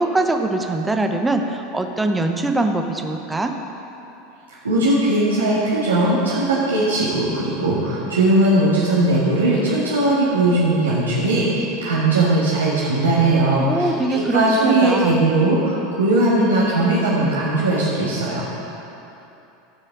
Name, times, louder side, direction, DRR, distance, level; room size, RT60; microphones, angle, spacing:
voice 1, 0.0-3.5 13.6-15.3, right 2 dB, 10° right, 4 dB, 0.9 m, -22 dB
voice 2, 4.6-18.4, right 2 dB, 80° right, -8 dB, 1.7 m, -19 dB
16.0 x 5.6 x 4.9 m, 2.9 s
figure-of-eight pair, 80°, 0 cm